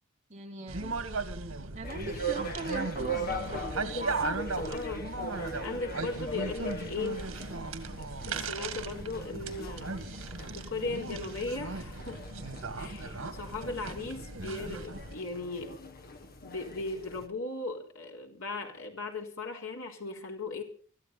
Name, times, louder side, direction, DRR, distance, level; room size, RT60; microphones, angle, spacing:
voice 1, 0.3-1.0 1.7-3.8, right 2 dB, 35° right, 3.5 m, -40 dB
sound 1, 0.7-15.2, right 3 dB, 90° right, 1.9 m, -37 dB
sound 2, 1.8-17.3, right 1 dB, 45° left, 1.5 m, -41 dB
voice 2, 3.8-7.2 8.0-10.0 10.5-12.3 12.8-15.8 16.4-20.6, left 3 dB, 85° left, 3.8 m, -38 dB
24.0 x 13.0 x 4.1 m
head